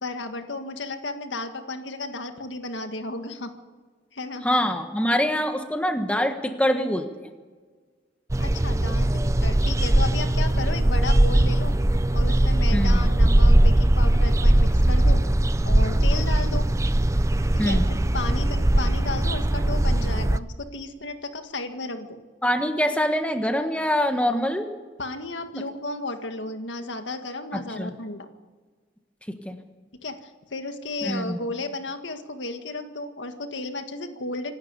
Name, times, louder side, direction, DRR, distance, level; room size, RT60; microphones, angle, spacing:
voice 1, 0.0-3.5 4.1-4.4 8.4-11.8 12.1-15.2 15.7-16.7 17.6-22.2 25.0-28.3 30.0-34.5, left 2 dB, 90° left, 7 dB, 1.8 m, -33 dB
voice 2, 4.4-7.1 12.7-13.1 17.6-17.9 22.4-24.7 27.5-27.9 29.3-29.6 31.0-31.4, equal, 5° left, 6 dB, 1.4 m, -24 dB
sound 1, 8.3-20.4, right 1 dB, 15° right, 0.5 m, -20 dB
26.5 x 12.0 x 8.3 m, 1.5 s
head